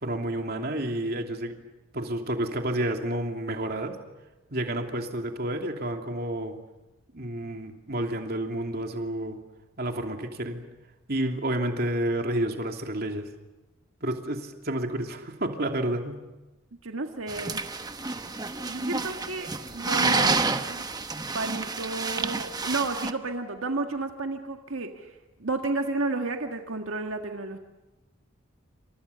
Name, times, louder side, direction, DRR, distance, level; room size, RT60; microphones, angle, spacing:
voice 1, 0.0-1.5 1.9-4.0 4.5-6.5 7.1-9.4 9.8-10.6 11.1-13.3 14.0-16.2, right 1 dB, 50° right, 4 dB, 2.9 m, -30 dB
voice 2, 16.8-17.6 18.7-20.4 20.7-20.8 21.3-25.1 25.4-27.6, right 3 dB, 85° right, 4 dB, 1.8 m, -31 dB
sound 1, 17.3-23.1, right 3 dB, 20° right, 1.0 m, -29 dB
29.0 x 27.0 x 7.0 m, 1.1 s
head